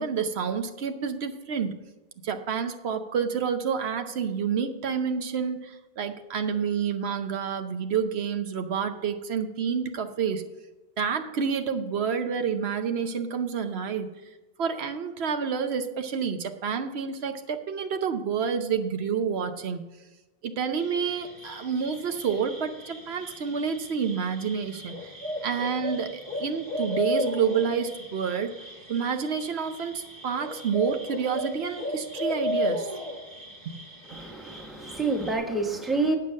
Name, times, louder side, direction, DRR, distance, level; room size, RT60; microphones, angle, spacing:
voice 1, 0.0-1.7 2.2-10.4 11.0-14.1 14.6-19.8 20.4-25.1 25.4-32.9 33.6-33.8 34.1-34.2, right 6 dB, 85° right, 7 dB, 1.1 m, -29 dB
sound 1, 20.8-35.3, left 1 dB, 40° right, 1.5 m, -35 dB
voice 2, 34.1-36.2, right 3 dB, ahead, 2 dB, 1.1 m, -28 dB
8.7 x 7.1 x 6.3 m, 1.1 s
omnidirectional pair, 1.0 m